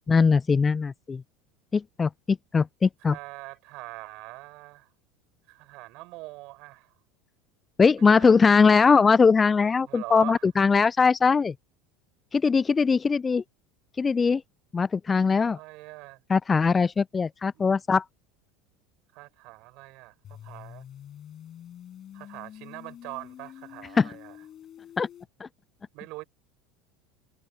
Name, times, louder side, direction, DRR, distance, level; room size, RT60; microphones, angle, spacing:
voice 1, 0.1-1.2 1.7-3.2 7.8-11.5 12.3-13.4 14.0-14.4 14.7-15.6 16.3-18.0 24.0-24.1 25.0-25.1, left 5 dB, 20° left, 0.4 m, -21 dB
voice 2, 3.0-4.9 5.5-6.9 8.2-8.5 9.9-10.5 15.4-16.2 17.5-17.7 19.1-20.9 22.1-24.4 25.9-26.2, right 23 dB, 55° right, 7.5 m, -42 dB
sound 1, 20.2-25.2, left 10 dB, 40° left, 6.3 m, -46 dB
figure-of-eight pair, 75°, 0 cm